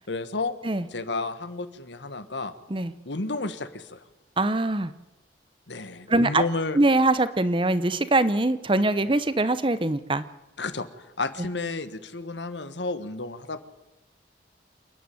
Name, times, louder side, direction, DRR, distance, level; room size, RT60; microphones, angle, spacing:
voice 1, 0.1-0.6 0.9-2.5 3.0-4.0 5.7-6.8 10.6-10.9 11.2-13.6, left 3 dB, 80° left, 12 dB, 1.4 m, -31 dB
voice 2, 4.4-4.9 6.1-6.4 6.7-10.2, right 2 dB, 25° right, 14 dB, 0.8 m, -22 dB
27.5 x 10.0 x 9.3 m, 0.98 s
head